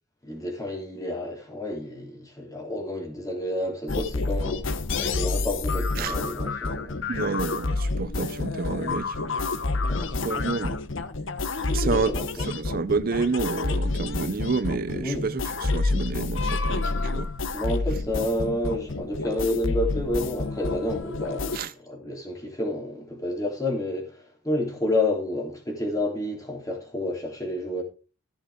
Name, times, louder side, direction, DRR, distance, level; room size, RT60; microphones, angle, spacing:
voice 1, 0.2-4.7 5.0-7.0 9.8-10.4 11.7-12.2 15.0-15.3 17.5-21.6 21.9-27.8, left 1 dB, 15° left, 3.6 m, -30 dB
sound 1, 3.9-21.6, left 3 dB, 60° left, 1.0 m, -29 dB
voice 2, 7.1-9.3 10.2-10.8 11.7-17.3 21.5-21.7, right 4 dB, 40° right, 0.4 m, -29 dB
14.5 x 6.6 x 5.0 m
head